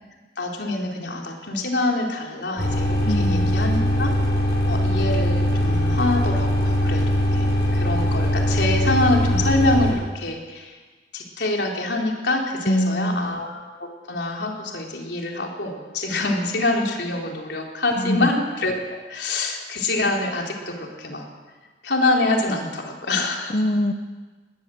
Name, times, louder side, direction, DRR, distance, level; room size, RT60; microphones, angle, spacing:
voice 1, 0.4-4.1 4.7-10.8 11.1-18.7 19.1-21.3 21.8-23.6, left 2 dB, 85° left, 0 dB, 3.9 m, -25 dB
sound 1, 2.6-9.9, equal, 65° left, 7.6 m, -21 dB
voice 2, 3.1-3.6 12.7-13.3 18.0-18.3 23.5-23.9, equal, 40° left, 9 dB, 1.1 m, -23 dB
20.0 x 19.0 x 7.8 m, 1.4 s
head